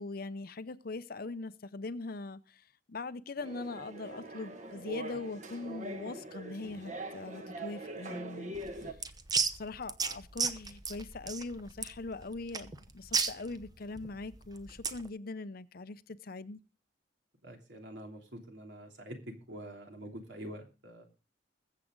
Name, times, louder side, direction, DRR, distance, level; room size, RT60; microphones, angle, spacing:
voice 1, 0.0-9.0 9.6-16.6, left 3 dB, 50° left, 0.7 m, -41 dB
sound 1, 3.4-8.9, right 2 dB, 40° right, 1.4 m, -43 dB
sound 2, 8.5-15.1, right 5 dB, 20° right, 0.8 m, -35 dB
voice 2, 17.4-21.0, right 1 dB, 70° right, 3.2 m, -46 dB
21.5 x 7.5 x 3.8 m
head